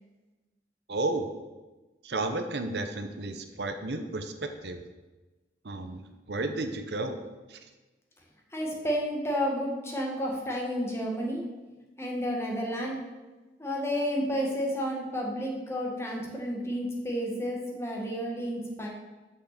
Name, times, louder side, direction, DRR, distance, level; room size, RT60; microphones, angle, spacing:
voice 1, 0.9-1.3 2.0-4.8 5.6-6.0 6.3-7.6, right 2 dB, 70° right, 7 dB, 0.7 m, -32 dB
voice 2, 8.5-11.4 12.0-13.0 13.6-18.9, equal, 15° left, -1 dB, 1.5 m, -31 dB
6.5 x 5.9 x 6.7 m, 1.2 s
head